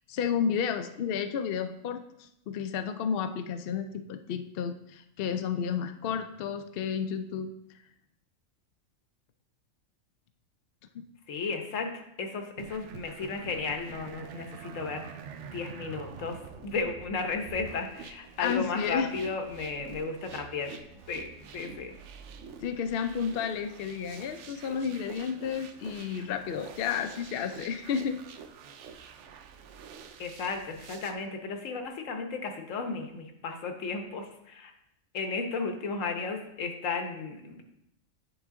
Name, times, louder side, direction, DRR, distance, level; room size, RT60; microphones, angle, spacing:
voice 1, 0.1-7.5 10.9-11.0 18.4-19.1 22.6-28.2, left 7 dB, 60° left, 8 dB, 0.6 m, -32 dB
voice 2, 11.3-15.0 15.5-20.7 21.1-21.9 30.2-34.7 35.1-37.6, left 4 dB, 80° left, 5 dB, 1.3 m, -34 dB
sound 1, 12.6-31.1, right 6 dB, 70° right, 0.9 m, -47 dB
9.1 x 4.9 x 3.6 m, 0.80 s
omnidirectional pair, 1.3 m